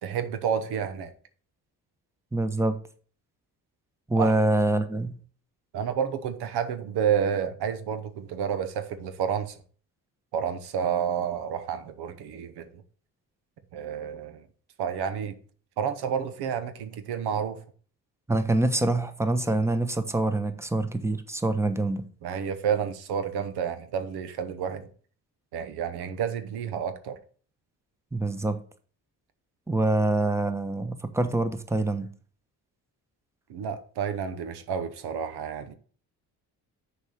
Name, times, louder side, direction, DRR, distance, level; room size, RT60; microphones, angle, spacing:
voice 1, 0.0-1.1 4.2-4.3 5.7-9.5 10.3-12.8 13.7-14.5 14.8-15.3 15.8-17.6 22.2-24.9 25.5-27.2 33.5-35.7, right 8 dB, 80° right, 1.0 m, -30 dB
voice 2, 2.3-2.8 4.1-5.2 18.3-22.1 28.1-28.6 29.7-32.1, right 2 dB, 5° right, 1.0 m, -25 dB
6.5 x 4.8 x 6.6 m
cardioid pair, 70°, 38 cm